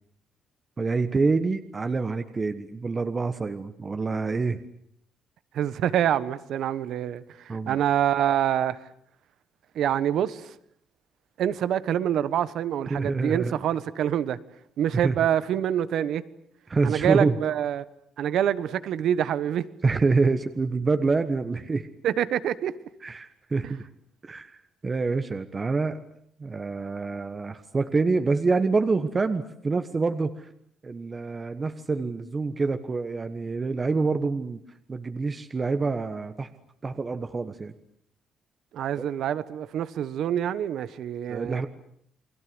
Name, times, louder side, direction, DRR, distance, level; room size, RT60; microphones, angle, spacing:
voice 1, 0.8-4.6 7.5-7.8 12.9-13.5 15.0-15.2 16.7-17.4 19.8-21.9 23.0-23.9 24.3-26.0 26.4-30.5 30.8-34.6 34.9-36.5 36.8-37.7 39.0-39.1 41.3-41.7, right 4 dB, 30° right, 9 dB, 1.4 m, -26 dB
voice 2, 5.5-8.8 9.7-10.5 11.4-14.4 14.8-16.2 16.8-17.8 18.2-19.7 22.0-22.7 38.7-41.6, right 10 dB, 75° right, 15 dB, 1.3 m, -26 dB
29.5 x 21.0 x 8.0 m, 0.69 s
cardioid pair, 90°, 0 cm